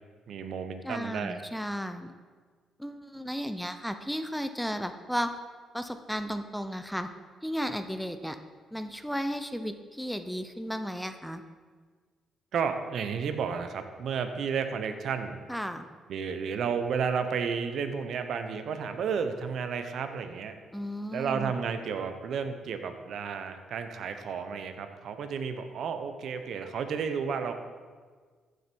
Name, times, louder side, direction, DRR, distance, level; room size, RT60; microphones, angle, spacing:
voice 1, 0.3-1.4 12.5-15.4 16.1-20.5 21.1-27.5, right 6 dB, 70° right, 8 dB, 0.9 m, -32 dB
voice 2, 0.8-2.1 2.8-5.3 5.7-7.1 7.4-8.4 8.7-11.4 15.5-15.9 20.7-21.5, equal, ahead, 8 dB, 0.6 m, -34 dB
14.5 x 6.5 x 4.6 m, 1.5 s
cardioid pair, 90°, 0 cm